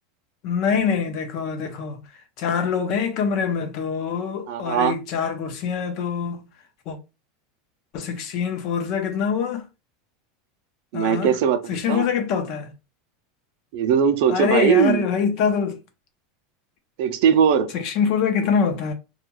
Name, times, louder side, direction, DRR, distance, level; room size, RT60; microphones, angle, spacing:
voice 1, 0.4-2.0 2.4-6.5 6.9-7.0 7.9-9.6 10.9-11.4 11.7-12.7 14.3-15.8 17.7-18.9, left 6 dB, 50° left, 0.6 m, -24 dB
voice 2, 4.5-5.0 10.9-11.6 11.9-12.1 13.7-15.0 17.0-17.7, right 8 dB, 65° right, 0.4 m, -19 dB
2.3 x 2.2 x 3.0 m
supercardioid pair, 150°, 0 cm